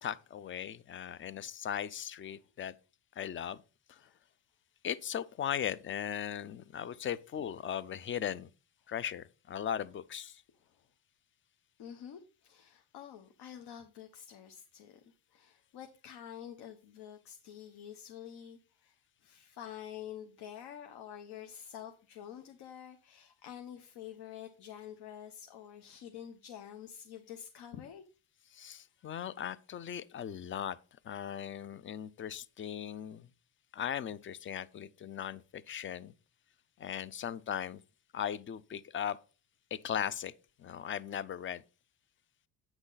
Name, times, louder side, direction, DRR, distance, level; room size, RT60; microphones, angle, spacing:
voice 1, 0.0-2.7 3.2-3.6 3.9-4.0 4.8-8.5 8.9-10.4 28.5-30.8 31.0-33.3 33.7-36.1 36.8-37.8 38.1-39.2 39.7-40.3 40.6-41.6, left 9 dB, 30° left, 0.5 m, -38 dB
voice 2, 11.8-15.0 15.3-18.9 19.2-28.0, left 9 dB, 60° left, 1.1 m, -48 dB
8.8 x 6.1 x 4.0 m
cardioid pair, 125°, 44 cm